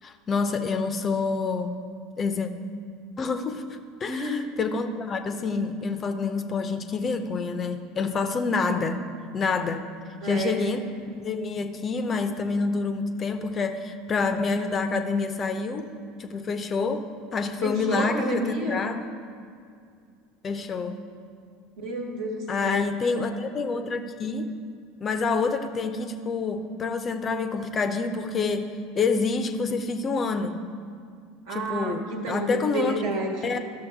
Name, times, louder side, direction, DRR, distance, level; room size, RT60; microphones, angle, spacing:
voice 1, 0.0-1.8 2.2-2.5 3.2-9.0 9.3-9.8 10.2-15.9 16.2-17.0 17.3-19.0 20.4-21.0 22.5-24.5 25.0-30.6 31.5-33.0 33.4-33.6, left 4 dB, 30° left, 8 dB, 0.6 m, -27 dB
voice 2, 4.1-4.5 10.2-10.7 17.6-18.8 21.8-22.8 31.5-33.5, right 1 dB, 60° right, 2 dB, 1.3 m, -30 dB
12.5 x 6.6 x 3.5 m, 2.3 s
figure-of-eight pair, 75°, 0 cm